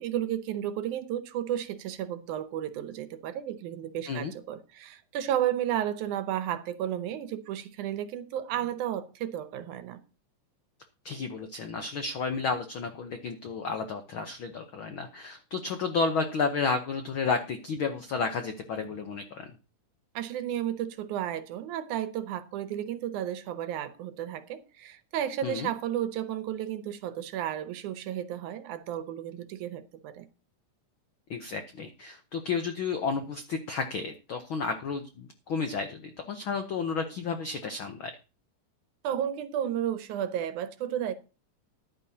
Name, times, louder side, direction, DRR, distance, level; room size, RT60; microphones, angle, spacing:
voice 1, 0.0-10.0 20.2-30.3 39.0-41.1, right 11 dB, 75° right, 2.2 m, -33 dB
voice 2, 11.0-19.5 25.4-25.7 31.3-38.1, left 5 dB, 85° left, 1.1 m, -32 dB
14.5 x 10.5 x 2.8 m
omnidirectional pair, 3.7 m